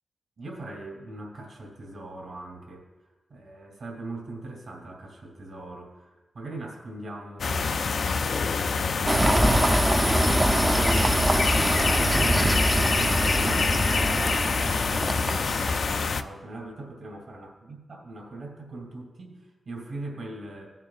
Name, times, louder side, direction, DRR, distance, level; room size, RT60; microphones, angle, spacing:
voice 1, 0.4-2.8 3.3-7.9 9.0-11.1 11.5-20.7, right 2 dB, 75° right, -1 dB, 2.4 m, -40 dB
sound 1, 7.4-16.2, left 5 dB, 70° left, 0.4 m, -26 dB
sound 2, 9.1-16.0, right 1 dB, 15° right, 0.5 m, -24 dB
16.5 x 7.4 x 2.4 m, 1.2 s
wide cardioid pair, 90°, 0 cm